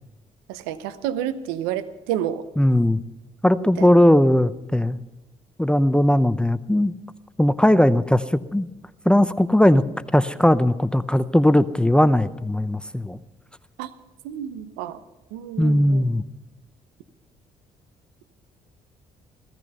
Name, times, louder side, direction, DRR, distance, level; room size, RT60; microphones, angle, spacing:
voice 1, 0.5-2.4 3.6-3.9 13.8-13.9 14.2-15.0 15.3-16.0, right 10 dB, 85° right, 13 dB, 0.8 m, -30 dB
voice 2, 2.6-3.0 3.4-5.0 5.6-6.9 7.4-8.7 9.1-9.8 10.1-13.2 15.6-16.2, left 1 dB, 5° left, 14 dB, 0.7 m, -18 dB
16.5 x 13.5 x 5.5 m, 1.0 s
hypercardioid pair, 55°, 15 cm